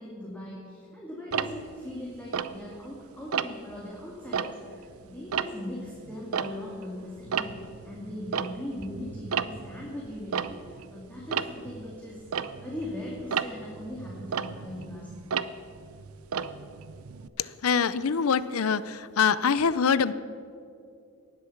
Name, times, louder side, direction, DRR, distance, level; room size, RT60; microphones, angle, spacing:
voice 1, 0.0-15.3, left 1 dB, 5° left, -5 dB, 2.2 m, -40 dB
Tick-tock, 1.3-3.0 3.3-3.8 4.2-6.9 7.2-17.3, right 7 dB, 80° right, 0.6 m, -34 dB
voice 2, 17.4-20.1, left 6 dB, 80° left, 17 dB, 0.5 m, -24 dB
18.5 x 8.4 x 7.2 m, 2.5 s
head